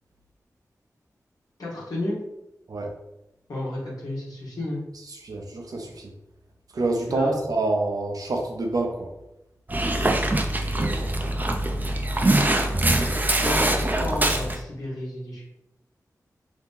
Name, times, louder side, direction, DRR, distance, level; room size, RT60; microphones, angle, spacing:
voice 1, 1.6-2.2 3.5-4.8 7.1-7.4 10.0-10.2 13.4-15.4, left 1 dB, 80° left, -6 dB, 1.1 m, -31 dB
voice 2, 5.1-6.1 6.7-9.1 10.7-10.9, right 2 dB, 75° right, 2 dB, 0.7 m, -27 dB
Dog, 9.7-14.6, right 1 dB, 30° right, 0.5 m, -23 dB
2.8 x 2.8 x 3.6 m, 0.88 s
cardioid pair, 50°, 6 cm